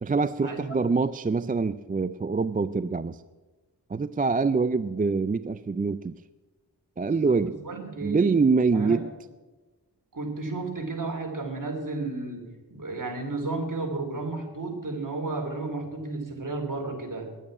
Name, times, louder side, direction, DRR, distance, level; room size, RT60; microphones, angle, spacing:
voice 1, 0.0-3.2 3.9-6.2 7.0-7.5 8.0-9.1, right 4 dB, 20° right, 14 dB, 0.4 m, -25 dB
voice 2, 7.0-8.3 8.7-9.0 10.1-17.3, right 3 dB, 50° right, 2 dB, 3.1 m, -33 dB
10.5 x 9.2 x 9.6 m, 1.2 s
wide cardioid pair, 60°, 42 cm